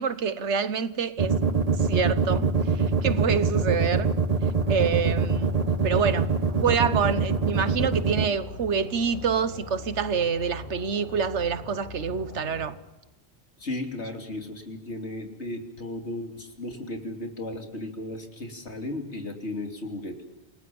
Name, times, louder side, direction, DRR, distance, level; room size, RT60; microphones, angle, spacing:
voice 1, 0.0-1.3 1.8-4.1 4.7-5.6 5.8-12.7, right 6 dB, 80° right, 1.4 m, -27 dB
sound 1, 1.2-8.3, right 5 dB, 35° right, 1.1 m, -23 dB
sound 2, 4.5-12.7, left 2 dB, 45° left, 5.8 m, -41 dB
voice 2, 13.6-20.2, left 1 dB, 75° left, 3.2 m, -35 dB
28.5 x 19.5 x 7.1 m
omnidirectional pair, 1.2 m